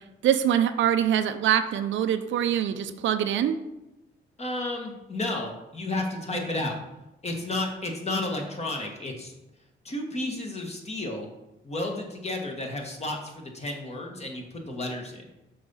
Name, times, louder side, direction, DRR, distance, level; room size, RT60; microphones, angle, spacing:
voice 1, 0.2-3.6, right 10 dB, 75° right, 9 dB, 0.6 m, -24 dB
voice 2, 4.4-6.8 7.2-9.3 9.8-11.3 11.6-15.2, left 2 dB, 35° left, 1 dB, 1.6 m, -32 dB
6.2 x 4.2 x 5.5 m, 0.95 s
cardioid pair, 90°, 20 cm